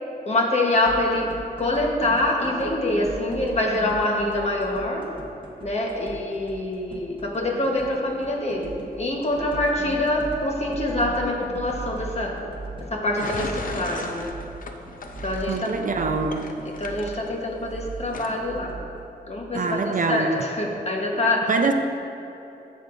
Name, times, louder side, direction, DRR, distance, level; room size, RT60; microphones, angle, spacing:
voice 1, 0.3-1.3 1.6-5.1 5.6-12.4 12.9-14.3 15.2-15.7 16.8-18.7 19.3-21.5, left 1 dB, 40° left, 0 dB, 1.2 m, -25 dB
sound 1, 0.8-19.1, right 2 dB, 30° right, 1.3 m, -39 dB
sound 2, 13.1-17.7 18.1-18.4, left 3 dB, 55° left, 0.6 m, -36 dB
voice 2, 15.5-16.6 19.5-20.4 21.5-21.7, right 4 dB, 55° right, 5 dB, 0.6 m, -24 dB
13.0 x 7.5 x 2.6 m, 2.9 s
wide cardioid pair, 120°, 17 cm